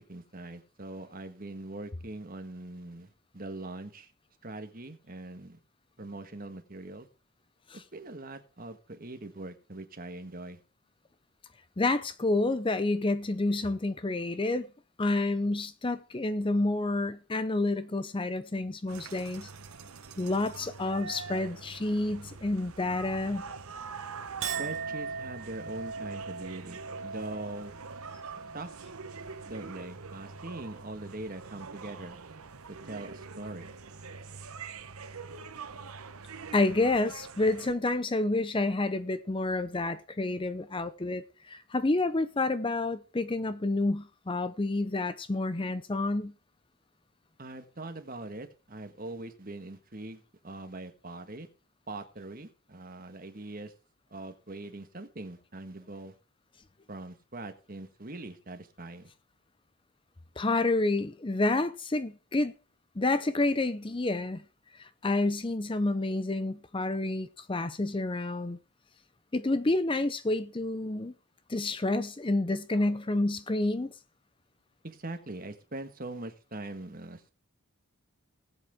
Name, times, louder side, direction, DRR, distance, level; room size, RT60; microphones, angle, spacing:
voice 1, 0.0-4.1 4.4-5.6 6.0-7.1 7.9-10.6 24.4-27.8 28.5-28.7 29.5-32.2 32.7-33.7 47.4-51.5 51.9-53.7 54.1-56.1 56.9-59.1 74.8-77.3, right 2 dB, 40° right, 1.5 m, -42 dB
voice 2, 11.8-14.7 15.0-19.5 20.2-23.4 36.5-46.3 60.4-62.5 63.0-64.4 64.8-68.6 69.3-71.1 71.5-73.9, left 2 dB, 25° left, 0.6 m, -29 dB
sound 1, 18.9-37.7, right 5 dB, 80° right, 1.0 m, -44 dB
Chink clink, 24.4-31.0 31.4-31.9, right 5 dB, 55° right, 1.2 m, -41 dB
19.0 x 8.0 x 3.6 m
head